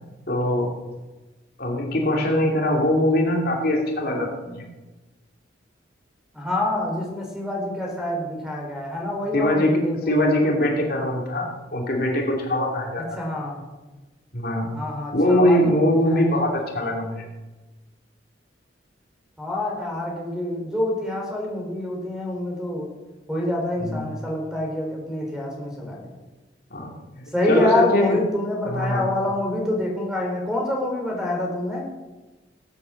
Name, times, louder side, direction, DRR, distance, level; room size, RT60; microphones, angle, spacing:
voice 1, 0.3-0.8 1.6-4.7 9.3-13.0 14.3-14.7 15.1-17.3 23.8-24.0 26.7-28.2 28.7-29.1, left 1 dB, 55° left, 0 dB, 2.6 m, -22 dB
voice 2, 6.3-10.5 13.2-13.6 14.7-15.8 16.1-16.5 19.4-23.0 23.3-26.2 27.3-31.9, left 1 dB, 5° right, 0 dB, 4.1 m, -26 dB
19.0 x 8.5 x 7.7 m, 1.2 s
head